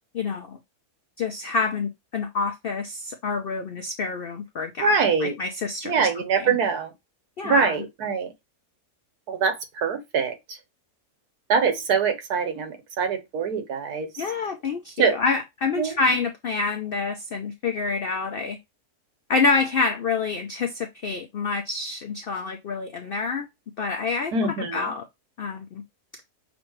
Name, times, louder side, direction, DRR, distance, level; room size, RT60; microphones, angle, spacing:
voice 1, 0.1-0.6 1.2-4.9 5.2-6.1 6.4-6.6 7.4-7.8 14.2-18.6 19.3-23.5 23.8-25.0 25.4-25.8, left 4 dB, 80° left, 0.5 m, -27 dB
voice 2, 4.8-5.3 5.8-6.9 7.4-8.3 9.3-10.6 11.5-14.1 15.0-15.2 15.8-15.9 24.3-24.8, right 5 dB, 80° right, 1.4 m, -24 dB
6.1 x 2.6 x 3.0 m
omnidirectional pair, 1.6 m